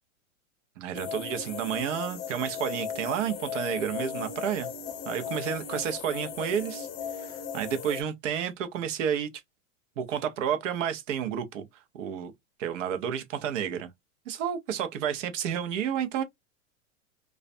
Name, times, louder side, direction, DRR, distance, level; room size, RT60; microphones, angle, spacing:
voice 1, 0.8-4.7 5.1-6.9 7.1-9.3 10.0-11.7 11.9-12.3 12.6-13.9 14.3-16.2, right 8 dB, 65° right, 0.8 m, -31 dB
sound 1, 0.9-8.0, left 7 dB, 40° left, 0.6 m, -37 dB
2.4 x 2.1 x 2.5 m
hypercardioid pair, 130°, 40 cm